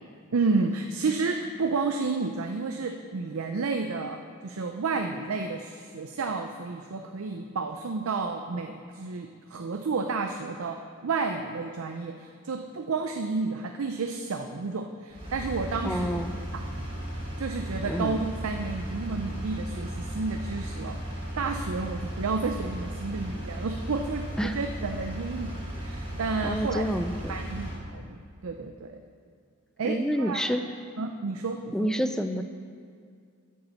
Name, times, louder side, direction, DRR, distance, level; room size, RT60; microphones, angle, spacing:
voice 1, 0.3-16.2 16.5-16.9 17.4-21.0 21.4-26.8 27.3-29.0 29.8-30.7 31.0-31.9, right 4 dB, 80° right, 5 dB, 0.5 m, -31 dB
Engine, 15.1-27.8, equal, 25° right, 2.1 m, -36 dB
voice 2, 15.8-16.3 17.9-18.2 24.4-24.6 26.4-27.1 29.8-30.7 31.7-32.4, equal, 5° left, 8 dB, 0.4 m, -28 dB
8.5 x 6.8 x 6.9 m, 2.2 s
head